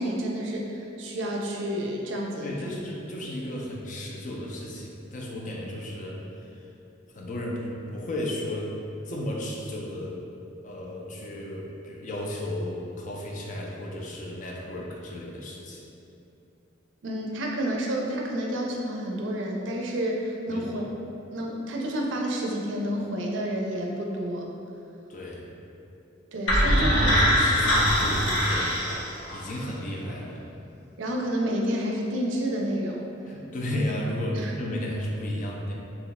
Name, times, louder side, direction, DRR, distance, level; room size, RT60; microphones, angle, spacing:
voice 1, 0.0-2.5 17.0-20.8 21.3-24.5 26.3-27.1 31.0-33.1 33.7-33.8 34.3-34.5, equal, 75° right, 0 dB, 0.4 m, -29 dB
voice 2, 2.4-6.7 7.1-8.8 9.1-10.2 10.6-15.8 20.5-20.7 25.1-25.5 26.6-28.8 29.3-30.5 33.3-35.7, left 1 dB, 40° left, -2 dB, 0.4 m, -33 dB
sound 1, 26.5-29.5, equal, 65° left, 0.8 m, -22 dB
2.8 x 2.2 x 3.9 m, 2.8 s
head